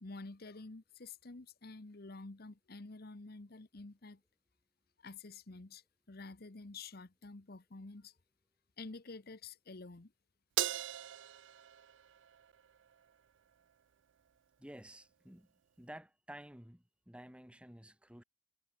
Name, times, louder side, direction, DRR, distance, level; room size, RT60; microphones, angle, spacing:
voice 1, 0.0-4.2 5.0-8.2 8.8-10.1, left 3 dB, 55° left, 1.1 m, -49 dB
Crash cymbal, 10.6-13.1, right 13 dB, 75° right, 0.4 m, -39 dB
voice 2, 14.6-15.5 15.8-18.2, right 1 dB, 5° right, 1.9 m, -52 dB
head